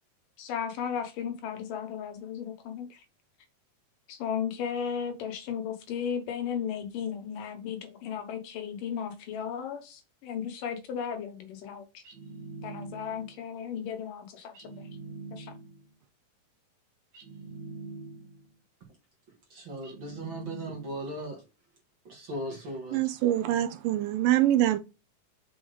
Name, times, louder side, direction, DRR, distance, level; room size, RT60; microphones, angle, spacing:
voice 1, 0.4-3.0 4.1-12.0 12.6-14.7 15.3-15.6, left 8 dB, 70° left, 2.6 m, -35 dB
sound 1, 12.0-13.4 14.5-15.9 17.1-18.5 19.8-21.2, right 3 dB, 60° right, 2.5 m, -44 dB
voice 2, 19.5-21.4 22.0-23.1, right 1 dB, 40° right, 2.0 m, -38 dB
voice 3, 22.9-24.8, right 13 dB, 80° right, 2.2 m, -24 dB
6.3 x 4.4 x 3.9 m
omnidirectional pair, 4.2 m